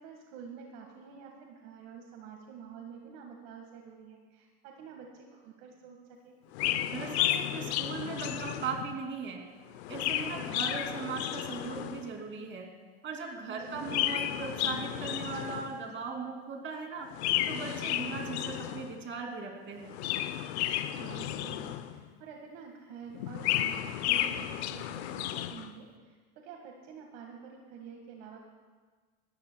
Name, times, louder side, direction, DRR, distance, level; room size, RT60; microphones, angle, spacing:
voice 1, 0.0-6.0 6.2-6.4 13.5-14.2 20.9-28.4, right 6 dB, 65° right, 1 dB, 1.8 m, -48 dB
Chirp tweet, 6.5-9.0 9.7-12.1 13.7-15.9 17.1-19.0 19.8-22.1 23.1-25.7, left 12 dB, 80° left, 0.8 m, -33 dB
voice 2, 6.9-9.4 9.9-12.7 13.0-17.1 17.5-20.0, right 5 dB, 35° right, 2 dB, 2.8 m, -38 dB
19.5 x 14.5 x 2.3 m, 1.4 s
supercardioid pair, 110°, 32 cm